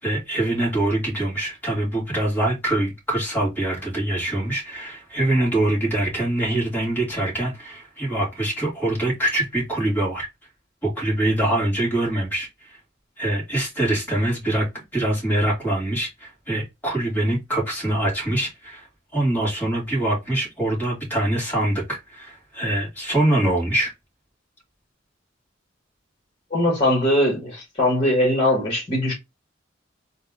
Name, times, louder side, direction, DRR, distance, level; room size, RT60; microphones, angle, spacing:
voice 1, 0.0-10.3 10.8-12.8 13.2-18.9 19.1-23.9, right 1 dB, 10° left, 2.3 m, -24 dB
voice 2, 26.5-29.1, left 1 dB, 25° left, 1.9 m, -20 dB
3.9 x 2.5 x 3.5 m
head